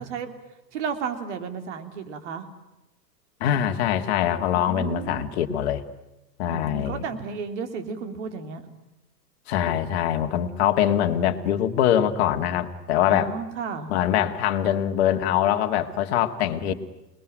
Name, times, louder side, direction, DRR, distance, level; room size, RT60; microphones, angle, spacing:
voice 1, 0.7-2.5 4.5-5.3 6.4-8.7 13.1-13.9, right 6 dB, 45° right, 7 dB, 3.4 m, -33 dB
voice 2, 3.4-5.8 6.4-7.0 9.5-13.3 13.9-16.7, left 10 dB, 40° left, 6 dB, 2.1 m, -23 dB
28.5 x 21.0 x 9.1 m, 0.97 s
figure-of-eight pair, 110°, 49 cm